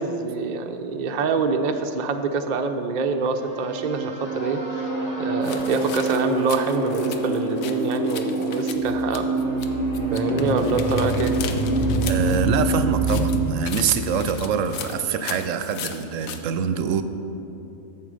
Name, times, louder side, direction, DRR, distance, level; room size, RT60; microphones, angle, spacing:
voice 1, 0.0-4.6 5.2-9.3 10.1-11.3, right 4 dB, 50° right, 6 dB, 0.5 m, -25 dB
sound 1, 3.2-13.5, right 2 dB, 30° left, 1.5 m, -25 dB
sound 2, 5.4-9.7 9.9-12.4 13.0-16.4, left 8 dB, 85° left, 1.1 m, -37 dB
voice 2, 12.1-17.0, right 7 dB, 75° right, 10 dB, 0.9 m, -25 dB
8.7 x 7.4 x 6.4 m, 3.0 s
omnidirectional pair, 1.4 m